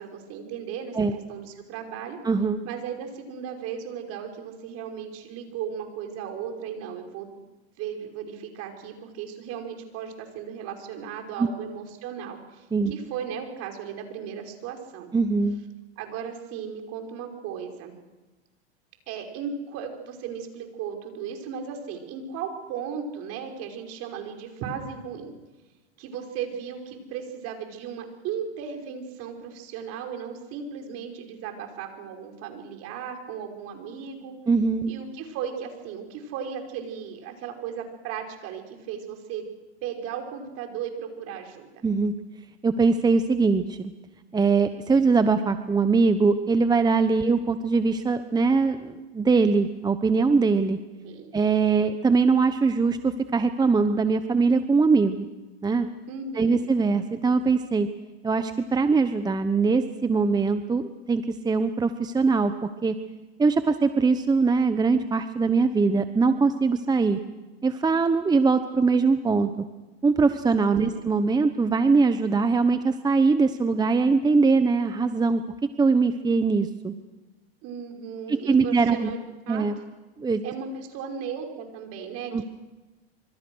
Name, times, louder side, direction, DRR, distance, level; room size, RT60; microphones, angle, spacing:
voice 1, 0.0-1.0 1.3-2.2 2.6-7.3 7.8-15.1 16.0-17.9 19.1-25.3 26.0-34.4 34.9-39.5 39.8-41.7 51.0-51.3 56.1-56.6 70.8-71.1 77.6-79.2 79.5-79.7 80.4-82.4, right 7 dB, 50° right, 4 dB, 5.6 m, -36 dB
voice 2, 2.2-2.6 11.4-11.5 12.7-12.9 15.1-15.6 34.5-34.9 41.8-42.1 42.6-43.9 44.3-50.8 51.3-55.3 55.6-55.9 56.3-57.9 58.2-62.9 63.4-67.2 67.6-69.5 70.0-75.4 75.8-76.9 78.3-79.1 79.5-79.7 80.2-80.4 82.3-82.4, right 4 dB, 10° right, 10 dB, 1.1 m, -22 dB
26.0 x 26.0 x 6.4 m, 1.1 s
hypercardioid pair, 115°, 32 cm